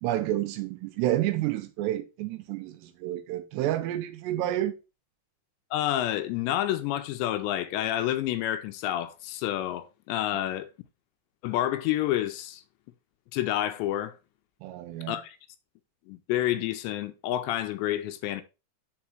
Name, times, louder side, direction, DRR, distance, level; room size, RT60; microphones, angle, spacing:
voice 1, 0.0-4.7 14.6-15.2, right 14 dB, 80° right, 2.6 m, -29 dB
voice 2, 5.7-10.7 11.4-12.6 13.3-14.2 15.1-15.4 16.1-18.4, left 13 dB, 80° left, 2.7 m, -29 dB
6.0 x 4.5 x 4.4 m
omnidirectional pair, 5.2 m